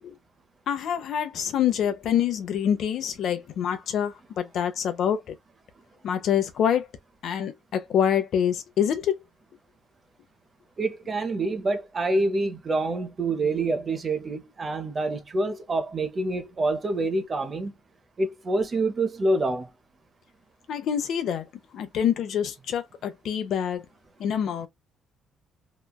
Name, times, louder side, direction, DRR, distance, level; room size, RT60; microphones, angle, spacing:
voice 1, 0.7-5.3 6.0-6.9 7.2-9.2 20.7-21.4 21.7-23.8 24.2-24.7, left 9 dB, 65° left, 0.7 m, -26 dB
voice 2, 10.8-17.7 18.2-19.7, right 2 dB, 30° right, 0.7 m, -26 dB
3.1 x 2.3 x 2.2 m
cardioid pair, 125°, 0 cm